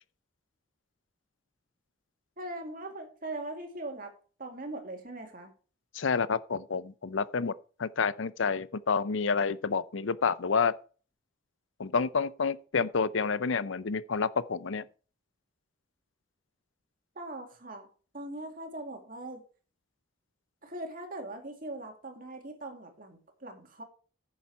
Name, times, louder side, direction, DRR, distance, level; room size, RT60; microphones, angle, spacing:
voice 1, 2.4-4.1 4.4-5.5 17.2-17.9 18.1-19.4 20.6-23.8, right 2 dB, 45° right, 2.1 m, -40 dB
voice 2, 5.9-7.5 7.8-10.7 11.8-14.8, left 5 dB, 65° left, 0.6 m, -29 dB
10.5 x 7.3 x 4.6 m
head